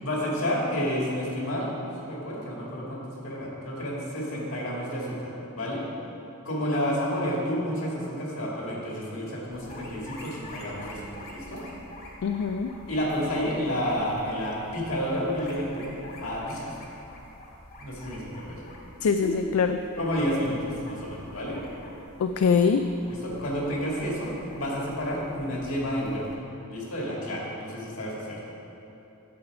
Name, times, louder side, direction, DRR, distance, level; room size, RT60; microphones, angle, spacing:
voice 1, 0.0-5.8 6.4-11.6 12.9-15.9 16.2-16.8 17.8-18.6 19.2-19.3 20.0-21.6 23.1-26.3 26.7-28.4, equal, 65° left, -4 dB, 2.3 m, -30 dB
sound 1, 9.5-26.3, left 1 dB, 45° left, 1.5 m, -47 dB
voice 2, 12.2-12.7 19.0-19.8 22.2-22.8, left 5 dB, 85° left, 7 dB, 0.4 m, -23 dB
9.5 x 7.3 x 4.9 m, 3.0 s
head